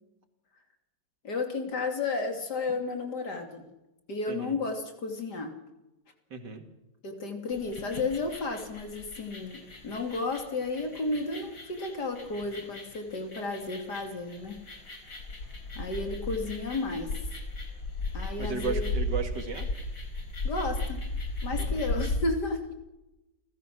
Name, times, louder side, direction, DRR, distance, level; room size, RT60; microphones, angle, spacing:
voice 1, 1.2-3.6 4.1-5.6 7.0-14.6 15.8-17.1 18.1-18.8 20.4-21.0 21.4-22.6, left 3 dB, 65° left, 4 dB, 3.4 m, -32 dB
voice 2, 4.3-4.6 6.3-6.6 18.4-19.7 21.6-21.8, right 4 dB, 70° right, 6 dB, 2.8 m, -35 dB
sound 1, 7.5-22.2, left 2 dB, 80° left, 4.7 m, -36 dB
29.5 x 15.5 x 6.2 m, 0.98 s
omnidirectional pair, 2.0 m